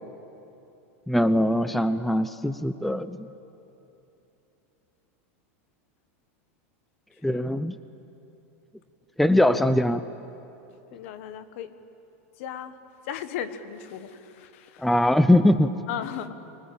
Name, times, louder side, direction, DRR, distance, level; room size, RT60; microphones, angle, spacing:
voice 1, 1.1-3.3 7.2-7.8 9.2-10.0 14.8-15.8, left 1 dB, ahead, 13 dB, 0.5 m, -21 dB
voice 2, 7.3-7.7 10.9-11.7 12.4-12.8 13.0-14.9 15.9-16.4, left 9 dB, 65° left, 12 dB, 1.4 m, -36 dB
25.0 x 20.0 x 8.5 m, 2.9 s
supercardioid pair, 135°, 8 cm